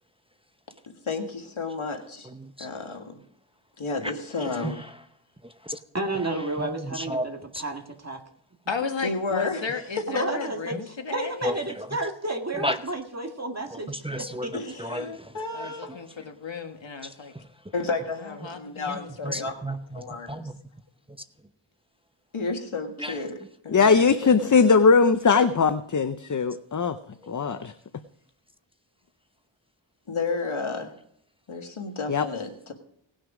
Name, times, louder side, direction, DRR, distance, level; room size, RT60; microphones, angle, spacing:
voice 1, 0.9-2.3 2.6-3.2 3.8-4.9 9.0-9.6 10.2-10.3 14.5-16.0 17.7-19.5 19.9-20.5 22.3-24.6 30.1-30.9 31.5-32.7, left 3 dB, 85° left, 1.7 m, -32 dB
voice 2, 2.2-2.7 4.0-4.1 4.5-4.9 5.4-5.8 6.6-7.3 7.5-7.6 11.4-11.9 12.6-12.8 13.9-14.5 14.8-16.0 17.0-17.4 18.9-20.5 23.0-23.2, equal, 10° right, 0.7 m, -33 dB
voice 3, 5.9-8.2 10.1-14.6, right 2 dB, 35° right, 1.9 m, -32 dB
voice 4, 8.7-11.5 15.5-17.3 18.1-19.6, left 5 dB, 70° left, 1.5 m, -34 dB
voice 5, 23.7-27.0 27.3-27.7 32.1-32.3, left 5 dB, 40° left, 0.6 m, -20 dB
18.5 x 6.3 x 5.0 m
wide cardioid pair, 50°, 47 cm